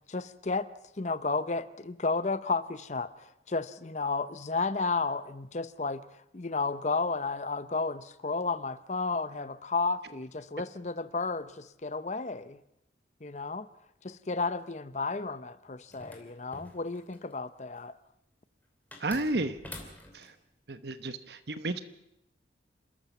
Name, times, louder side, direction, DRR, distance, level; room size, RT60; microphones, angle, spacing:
voice 1, 0.1-0.7 1.0-6.0 6.3-12.6 13.2-13.7 14.0-17.9, left 3 dB, 40° left, 14 dB, 0.7 m, -32 dB
sound 1, 15.9-17.3 18.9-20.3, left 1 dB, 10° left, 2.9 m, -47 dB
voice 2, 19.0-19.6 20.1-20.3 20.7-21.8, right 2 dB, 60° right, 11 dB, 1.0 m, -32 dB
28.5 x 13.5 x 7.1 m, 0.81 s
head